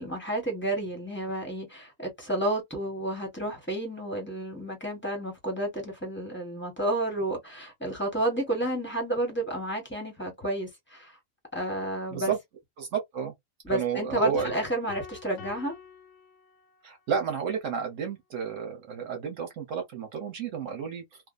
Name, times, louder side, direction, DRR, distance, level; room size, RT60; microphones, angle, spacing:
voice 1, 0.0-11.1 11.5-12.3 13.6-15.8, right 1 dB, 10° left, 1.2 m, -31 dB
voice 2, 12.8-13.3 13.7-14.5 16.8-21.0, right 7 dB, 75° right, 1.2 m, -31 dB
sound 1, 14.4-16.9, left 6 dB, 75° left, 1.1 m, -45 dB
2.7 x 2.4 x 2.2 m
omnidirectional pair, 1.3 m